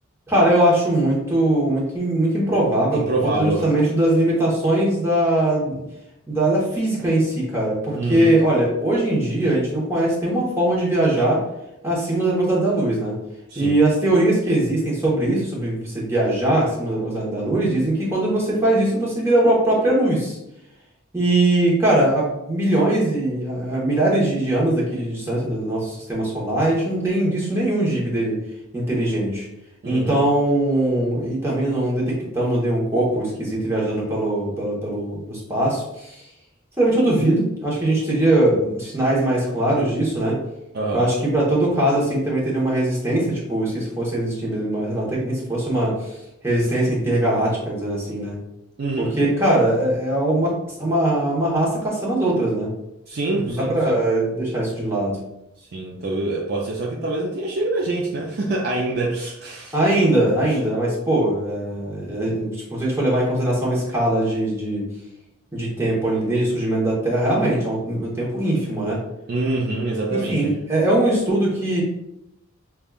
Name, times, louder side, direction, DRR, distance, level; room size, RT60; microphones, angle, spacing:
voice 1, 0.3-5.8 6.3-11.4 11.8-13.1 13.5-20.4 21.1-28.4 28.7-29.5 29.8-36.2 36.8-40.4 40.9-46.2 46.4-48.4 49.0-52.7 53.4-55.2 59.7-64.9 65.5-69.0 70.1-71.8, right 1 dB, 10° right, -5 dB, 0.9 m, -21 dB
voice 2, 2.9-3.7 7.9-8.3 13.5-13.7 29.8-30.2 40.7-41.1 48.8-49.1 53.1-54.0 55.7-59.8 69.3-70.6, right 2 dB, 45° right, -2 dB, 0.4 m, -25 dB
5.1 x 2.3 x 2.3 m, 0.87 s
head